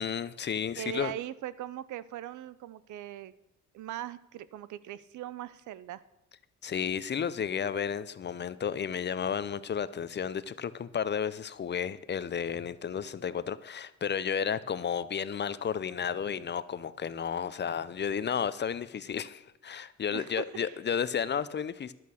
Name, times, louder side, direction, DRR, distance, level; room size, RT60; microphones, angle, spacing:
voice 1, 0.0-1.1 6.6-21.9, left 7 dB, 35° left, 16 dB, 0.6 m, -32 dB
voice 2, 0.8-3.3 3.7-6.0 20.1-20.4, right 12 dB, 75° right, 17 dB, 0.6 m, -40 dB
11.0 x 8.3 x 6.4 m, 0.89 s
cardioid pair, 90°, 30 cm